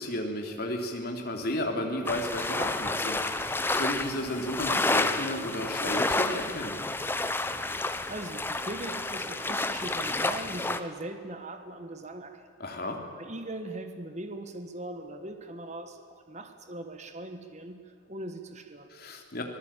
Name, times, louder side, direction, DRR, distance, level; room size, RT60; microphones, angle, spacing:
voice 1, 0.0-6.8 12.6-13.0 18.9-19.4, left 1 dB, 50° left, 2 dB, 3.2 m, -33 dB
sound 1, 2.1-10.8, left 2 dB, 10° left, 0.8 m, -30 dB
voice 2, 8.1-12.5 13.2-18.9, right 1 dB, 35° right, 7 dB, 1.3 m, -40 dB
25.0 x 19.0 x 8.9 m, 2.1 s
head